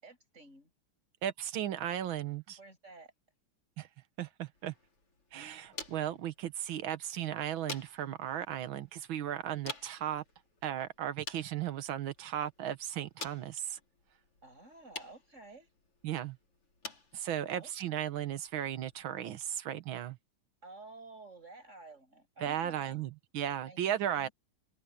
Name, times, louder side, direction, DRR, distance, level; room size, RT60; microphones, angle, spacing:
voice 1, 0.0-0.7 2.6-3.1 14.4-15.7 17.5-17.7 20.6-23.0 23.7-24.3, right 3 dB, 30° right, 7.7 m, -52 dB
voice 2, 1.2-2.6 3.8-3.9 4.2-4.7 5.3-10.2 10.6-13.8 16.0-16.4 17.1-20.2 22.4-24.3, right 10 dB, 65° right, 1.8 m, -36 dB
sound 1, 4.5-19.6, left 3 dB, 85° left, 5.8 m, -50 dB
omnidirectional pair, 2.4 m